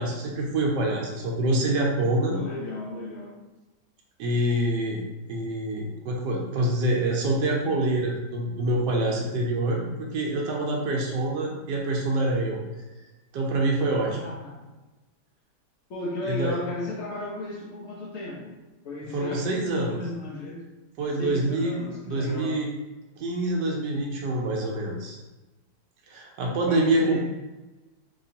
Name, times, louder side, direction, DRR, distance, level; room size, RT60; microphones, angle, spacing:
voice 1, 0.0-2.4 4.2-12.6 13.3-14.2 16.2-16.6 19.1-20.0 21.0-21.7 22.0-22.7 23.2-25.2 26.1-27.2, right 1 dB, 85° right, -1 dB, 1.2 m, -26 dB
voice 2, 2.3-3.4 9.8-9.9 14.1-14.7 15.9-18.5 18.8-20.6 21.2-22.6 26.6-27.2, left 2 dB, 75° left, -3 dB, 0.6 m, -35 dB
3.1 x 2.9 x 2.7 m, 1.1 s
omnidirectional pair, 1.8 m